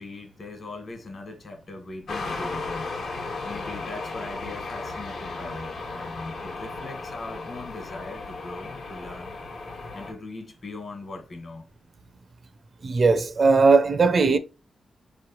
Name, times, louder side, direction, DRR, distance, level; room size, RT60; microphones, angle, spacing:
voice 1, 0.0-2.9 3.4-9.4 9.9-11.7, left 2 dB, 50° left, 1.3 m, -40 dB
sound 1, 2.1-10.1, left 3 dB, 75° left, 1.1 m, -35 dB
voice 2, 12.8-14.4, right 4 dB, 50° right, 0.4 m, -18 dB
4.6 x 3.0 x 2.9 m
wide cardioid pair, 105°, 0 cm